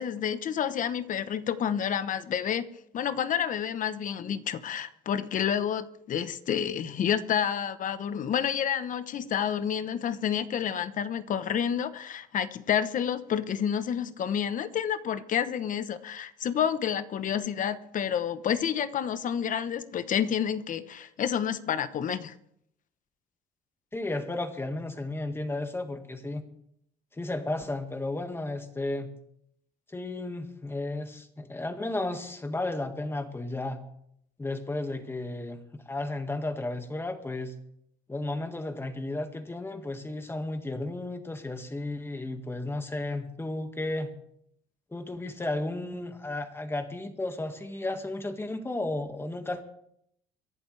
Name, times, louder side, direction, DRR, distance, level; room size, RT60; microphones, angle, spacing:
voice 1, 0.0-2.7 2.9-22.3, left 8 dB, 50° left, 1.0 m, -29 dB
voice 2, 23.9-26.4 27.1-29.1 29.9-33.8 34.4-37.6 38.1-44.1 44.9-49.6, left 2 dB, 15° left, 1.8 m, -33 dB
24.0 x 11.5 x 3.3 m
cardioid pair, 110°, 17 cm